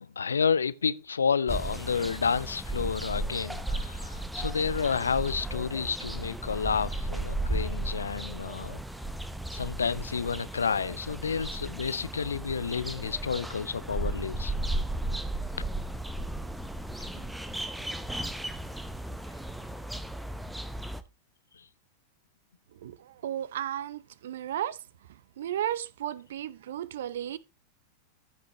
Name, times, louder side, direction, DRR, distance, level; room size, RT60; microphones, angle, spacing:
voice 1, 0.0-8.8 9.5-14.5 15.6-15.7 17.2-17.3 21.5-21.6, left 6 dB, 70° left, 0.5 m, -30 dB
sound 1, 1.5-21.0, right 1 dB, 5° right, 0.8 m, -35 dB
voice 2, 22.8-24.8 25.4-27.4, right 11 dB, 60° right, 0.7 m, -34 dB
14.5 x 6.0 x 2.9 m
figure-of-eight pair, 90°, 0 cm